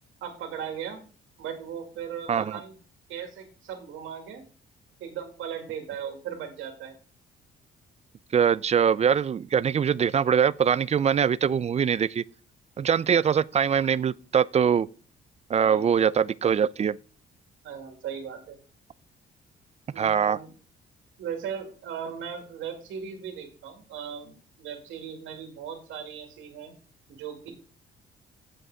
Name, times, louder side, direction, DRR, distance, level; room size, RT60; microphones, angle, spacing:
voice 1, 0.2-1.0 1.4-2.7 3.1-4.4 5.0-6.9 15.6-15.9 17.6-18.6 19.9-20.5 21.2-26.7 27.1-27.5, right 8 dB, 85° right, 2.4 m, -37 dB
voice 2, 8.3-12.2 12.8-14.9 15.5-17.0 20.0-20.4, right 7 dB, 35° right, 0.4 m, -23 dB
7.7 x 7.7 x 4.8 m
cardioid pair, 90°, 20 cm